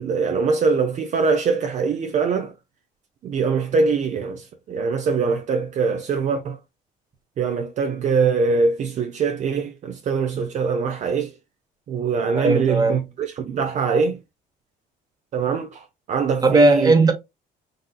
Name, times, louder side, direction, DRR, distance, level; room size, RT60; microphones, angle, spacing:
voice 1, 0.0-2.5 3.2-6.6 7.4-11.3 11.9-14.2 15.3-16.9, right 5 dB, 45° right, 0.5 m, -23 dB
voice 2, 12.3-13.0 16.4-17.1, right 2 dB, 25° right, 0.9 m, -17 dB
3.9 x 2.6 x 2.2 m
cardioid pair, 110°, 17 cm